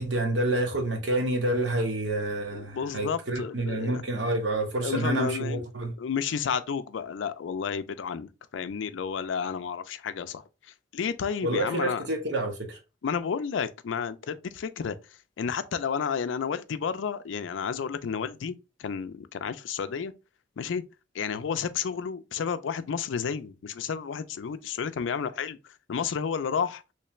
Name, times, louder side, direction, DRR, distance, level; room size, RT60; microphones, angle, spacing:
voice 1, 0.0-5.9 11.4-12.8, right 1 dB, 70° right, 1.0 m, -28 dB
voice 2, 2.5-4.0 4.8-5.6 6.0-12.1 13.0-15.0 15.4-20.1 20.6-20.8 21.1-26.8, left 6 dB, 80° left, 0.4 m, -31 dB
3.3 x 3.1 x 3.0 m
head